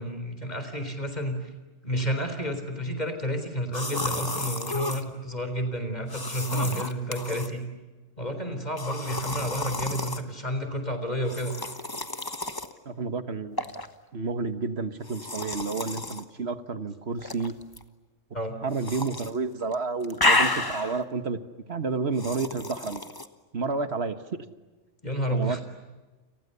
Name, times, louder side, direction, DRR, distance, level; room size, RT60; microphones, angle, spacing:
voice 1, 0.0-1.5 1.8-7.6 8.2-11.5 18.3-18.6 25.0-25.6, equal, 35° left, 7 dB, 4.1 m, -30 dB
sound 1, 3.7-5.0 6.1-7.5 8.8-10.2 11.2-12.7 13.6-13.9 15.0-16.2 17.2-17.8 18.8-19.3 19.6-21.0 22.2-23.3, left 2 dB, 20° left, 1.3 m, -30 dB
voice 2, 12.8-13.6 14.1-17.5 18.6-21.4 21.7-23.0 23.5-24.2 25.3-25.6, right 4 dB, 55° right, 10 dB, 1.7 m, -30 dB
30.0 x 28.5 x 6.9 m, 1.2 s
omnidirectional pair, 1.3 m